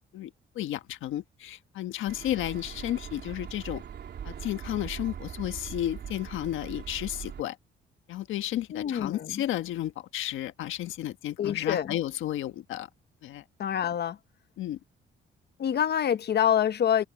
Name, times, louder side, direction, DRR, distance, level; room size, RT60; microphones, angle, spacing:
voice 1, 0.1-3.8 4.2-7.6 8.1-12.9 13.2-13.4 14.6-14.8, left 13 dB, 85° left, 1.4 m, -33 dB
sound 1, 2.1-7.4, right 8 dB, 60° right, 3.9 m, -41 dB
voice 2, 8.7-9.4 11.4-11.9 13.6-14.2 15.6-17.0, left 9 dB, 55° left, 1.0 m, -26 dB
cardioid pair, 90°, 20 cm